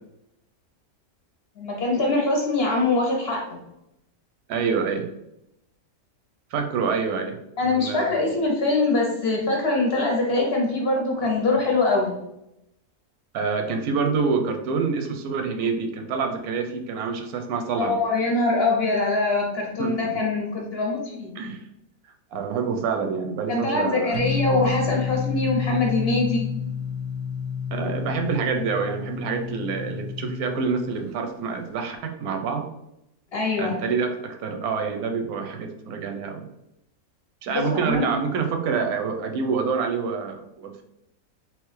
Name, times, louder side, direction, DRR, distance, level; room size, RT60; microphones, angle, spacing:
voice 1, 1.6-3.6 7.6-12.2 17.8-21.3 23.5-26.5 33.3-33.8 37.5-38.2, left 2 dB, 55° left, 0 dB, 0.7 m, -23 dB
voice 2, 4.5-5.1 6.5-7.4 7.6-8.2 13.3-18.0 19.8-20.0 21.4-21.6 22.3-24.2 27.7-32.7 33.6-36.5 37.4-40.8, right 5 dB, 85° right, 5 dB, 1.1 m, -27 dB
sound 1, 24.1-31.0, left 7 dB, 65° right, 0.7 m, -30 dB
3.4 x 3.0 x 3.1 m, 0.83 s
omnidirectional pair, 1.5 m